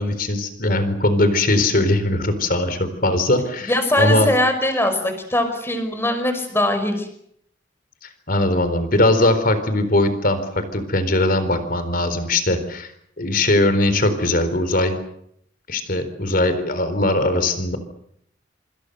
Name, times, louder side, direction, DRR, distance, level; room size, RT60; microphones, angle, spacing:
voice 1, 0.0-3.7 4.0-4.3 8.3-12.9 13.2-15.0 15.7-17.8, left 2 dB, 50° left, 11 dB, 4.0 m, -20 dB
voice 2, 3.6-7.1, left 1 dB, 15° left, 7 dB, 5.4 m, -21 dB
26.5 x 26.0 x 6.8 m, 0.74 s
head